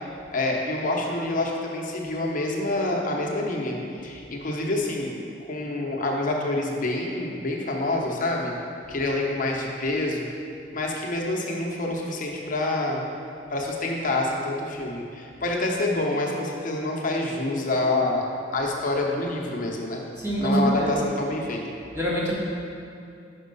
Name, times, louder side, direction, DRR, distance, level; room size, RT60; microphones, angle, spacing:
voice 1, 0.3-3.8 4.0-5.1 5.4-8.5 8.9-10.3 10.7-13.0 13.5-18.3 18.5-20.0 20.4-21.6, left 2 dB, 45° left, -1 dB, 0.9 m, -27 dB
voice 2, 20.2-20.9 21.9-22.3, right 1 dB, 15° right, -6 dB, 1.5 m, -24 dB
5.9 x 5.3 x 5.3 m, 2.5 s
head